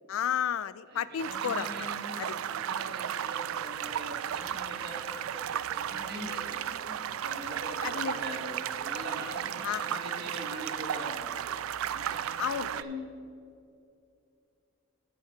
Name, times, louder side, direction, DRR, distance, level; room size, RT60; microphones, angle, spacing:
voice 1, 0.1-1.7 2.2-2.3 7.8-8.1 9.6-9.8 12.4-12.7, left 9 dB, 80° left, 17 dB, 0.3 m, -31 dB
voice 2, 0.9-11.4 11.9-13.1, right 1 dB, 50° right, 0 dB, 1.6 m, -42 dB
sound 1, 1.2-12.8, right 10 dB, 80° right, 0.3 m, -34 dB
14.5 x 5.9 x 4.3 m, 2.6 s
head